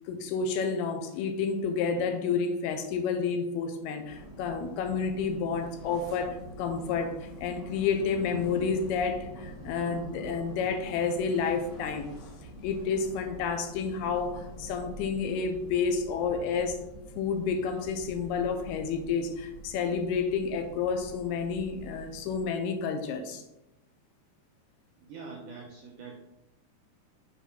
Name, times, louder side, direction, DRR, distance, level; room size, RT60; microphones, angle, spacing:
voice 1, 0.1-12.1 12.6-16.8 17.2-23.4, left 5 dB, 80° left, 7 dB, 2.6 m, -30 dB
sound 1, 4.1-22.4, right 1 dB, 55° left, 0.7 m, -45 dB
voice 2, 25.0-26.2, right 4 dB, 75° right, 0 dB, 1.9 m, -44 dB
6.9 x 4.6 x 5.8 m, 0.92 s
omnidirectional pair, 4.7 m